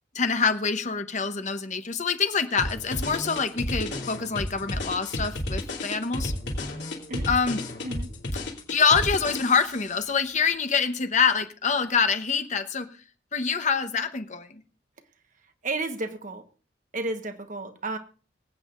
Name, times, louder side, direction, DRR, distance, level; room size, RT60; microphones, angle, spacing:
voice 1, 0.1-6.3 7.3-7.6 8.7-12.9 13.3-14.5, left 5 dB, 40° left, 8 dB, 0.9 m, -25 dB
sound 1, 2.6-9.9, left 1 dB, 65° left, 2.8 m, -32 dB
voice 2, 15.6-16.4 16.9-18.0, right 2 dB, 45° right, 7 dB, 1.2 m, -32 dB
24.5 x 8.4 x 2.5 m, 0.37 s
head